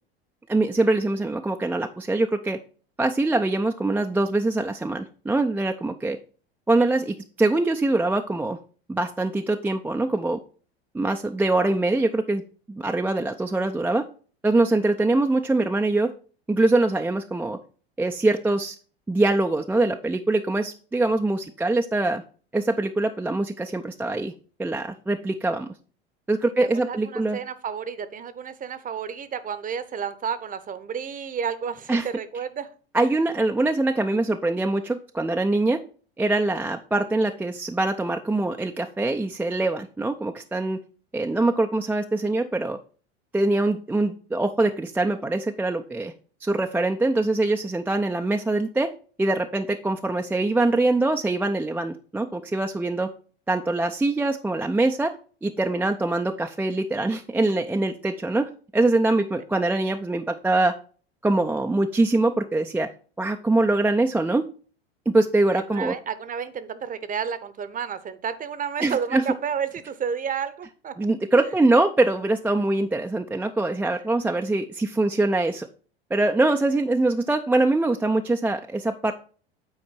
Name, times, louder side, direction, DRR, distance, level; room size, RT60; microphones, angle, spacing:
voice 1, 0.5-2.6 3.0-6.2 6.7-8.6 8.9-10.4 10.9-12.4 12.7-14.1 14.4-16.1 16.5-17.6 18.0-18.7 19.1-22.2 22.5-24.3 24.6-25.7 26.3-27.4 31.9-32.1 32.9-35.8 36.2-40.8 41.1-42.8 43.3-46.1 46.4-48.9 49.2-53.1 53.5-55.1 55.4-60.7 61.2-62.9 63.2-64.4 65.1-65.9 68.8-69.2 71.0-75.7 76.1-79.1, right 2 dB, 5° right, 4 dB, 0.4 m, -23 dB
voice 2, 26.9-32.7 65.5-71.1, right 7 dB, 25° right, 14 dB, 0.8 m, -31 dB
8.8 x 4.4 x 4.4 m, 0.39 s
hypercardioid pair, 80°, 32 cm